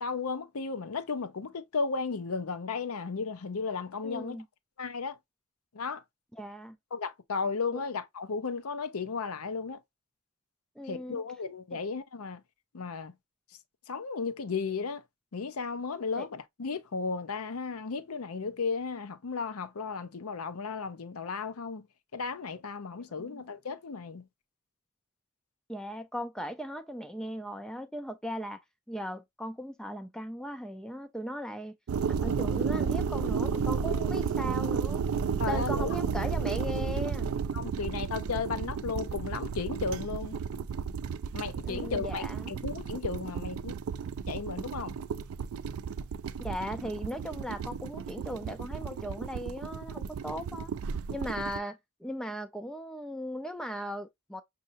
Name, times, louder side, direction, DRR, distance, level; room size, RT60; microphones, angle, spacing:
voice 1, 0.0-4.4 4.8-5.2 5.7-6.0 6.9-9.8 10.9-12.4 12.7-13.1 13.9-15.0 15.3-21.9 22.1-24.3 35.4-35.9 37.5-40.4 41.3-43.8 44.3-44.9, left 4 dB, 80° left, 0.6 m, -34 dB
voice 2, 4.0-4.5 6.3-6.8 7.7-7.8 10.8-11.2 11.7-11.8 16.2-16.3 23.2-23.4 25.7-28.6 28.9-31.7 32.2-35.0 35.4-37.3 41.6-42.6 46.4-50.7 51.1-54.4, equal, 5° left, 0.3 m, -38 dB
sound 1, 31.9-51.6, right 6 dB, 75° right, 0.4 m, -33 dB
6.4 x 2.8 x 2.5 m
head